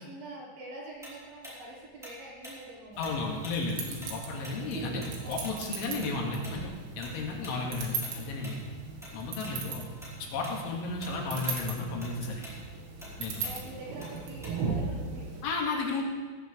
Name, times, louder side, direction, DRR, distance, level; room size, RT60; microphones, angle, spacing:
voice 1, 0.0-3.1 5.2-5.4 9.7-9.8 13.4-15.4, right 1 dB, 60° right, -2 dB, 2.7 m, -45 dB
Tick-tock, 1.0-4.2 4.4-9.1 9.4-9.6 10.0-10.6 10.9-14.8, equal, ahead, 3.8 m, -47 dB
sound 1, 2.9-15.4, right 4 dB, 90° right, 4.5 m, -38 dB
voice 2, 3.0-6.7 7.0-8.6 9.1-9.8 10.3-12.5 13.2-13.4 15.4-16.1, left 3 dB, 75° left, -1 dB, 4.3 m, -33 dB
18.0 x 14.5 x 3.4 m, 1.4 s
omnidirectional pair, 5.8 m